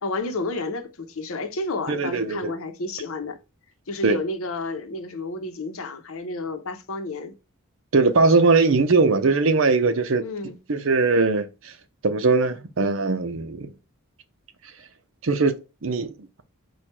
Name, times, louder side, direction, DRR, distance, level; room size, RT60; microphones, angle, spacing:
voice 1, 0.0-3.4 3.9-7.3 10.2-10.6, left 2 dB, 75° left, 0.8 m, -31 dB
voice 2, 1.9-2.5 4.0-4.2 7.9-10.2 10.7-11.7 12.0-13.7 15.2-16.1, right 3 dB, 65° right, 0.6 m, -20 dB
4.5 x 2.3 x 4.6 m
head